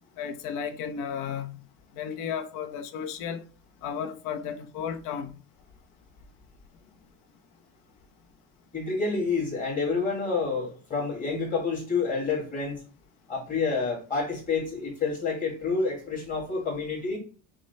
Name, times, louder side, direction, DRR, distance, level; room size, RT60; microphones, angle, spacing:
voice 1, 0.2-1.6 1.9-3.4 3.8-5.4, left 7 dB, 50° left, 0.7 m, -34 dB
voice 2, 8.7-12.8 13.3-17.2, left 4 dB, 20° left, 2.0 m, -28 dB
5.9 x 2.1 x 4.1 m
cardioid pair, 165°, 40 cm